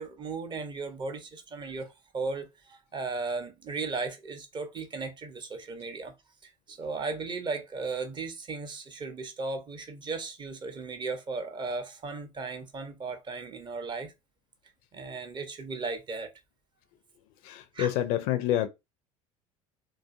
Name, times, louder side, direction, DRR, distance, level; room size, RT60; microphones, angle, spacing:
voice 1, 0.0-6.1 6.4-14.1 14.9-16.3 17.7-17.9, right 4 dB, 25° right, 0.5 m, -36 dB
voice 2, 17.4-18.7, left 12 dB, 50° left, 0.4 m, -27 dB
2.4 x 2.3 x 2.4 m
figure-of-eight pair, 65°, 18 cm